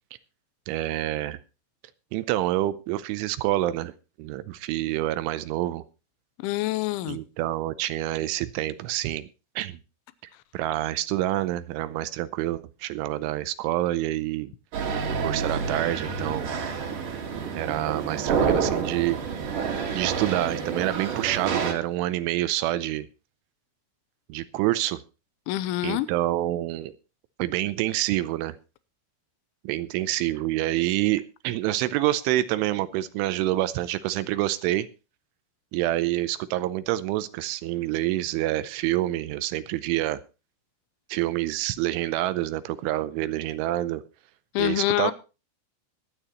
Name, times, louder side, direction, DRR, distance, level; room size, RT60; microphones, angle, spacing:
voice 1, 0.7-1.4 2.1-3.9 4.2-5.8 7.1-9.3 9.6-9.8 10.5-14.5 15.2-16.5 17.5-19.2 19.9-23.1 24.3-25.0 25.8-26.9 27.4-28.6 29.6-34.9 35.7-40.2 41.1-44.0 44.6-45.1, right 15 dB, 80° right, 3.1 m, -27 dB
voice 2, 6.4-7.2 25.5-26.1 44.5-45.1, left 16 dB, 80° left, 3.1 m, -26 dB
sound 1, 14.7-21.7, right 6 dB, 55° right, 3.0 m, -28 dB
22.5 x 9.1 x 3.0 m
omnidirectional pair, 5.6 m